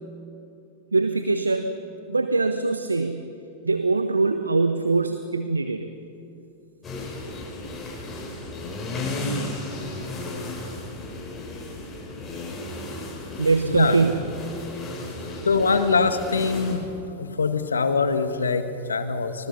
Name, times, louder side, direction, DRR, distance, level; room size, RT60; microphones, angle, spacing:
voice 1, 0.9-1.7 2.1-3.3 3.6-5.9 13.4-14.3 15.0-15.1, right 3 dB, 85° right, 8 dB, 0.9 m, -23 dB
sound 1, 6.8-16.7, left 2 dB, 20° left, 7.0 m, -34 dB
voice 2, 13.6-14.0 15.5-16.9 17.2-19.5, left 4 dB, 80° left, 9 dB, 1.6 m, -23 dB
25.0 x 21.0 x 5.6 m, 2.8 s
figure-of-eight pair, 95°, 0 cm